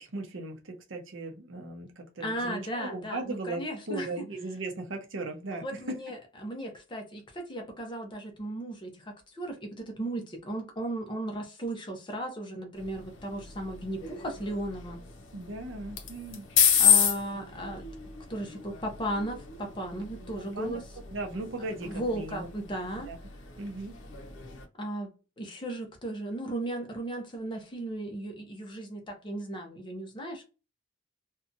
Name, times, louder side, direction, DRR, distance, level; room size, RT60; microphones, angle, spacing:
voice 1, 0.0-6.0 15.3-16.5 20.5-20.8 21.1-22.5 23.1-23.2 23.6-24.0, right 2 dB, 75° right, 0.7 m, -37 dB
voice 2, 2.2-4.1 5.6-8.9 9.4-15.0 16.8-17.8 18.3-20.8 21.8-23.1 24.8-25.1 25.4-30.4, right 1 dB, 25° left, 0.7 m, -36 dB
sound 1, 12.8-24.7, left 7 dB, 70° left, 0.6 m, -31 dB
2.7 x 2.2 x 2.6 m
head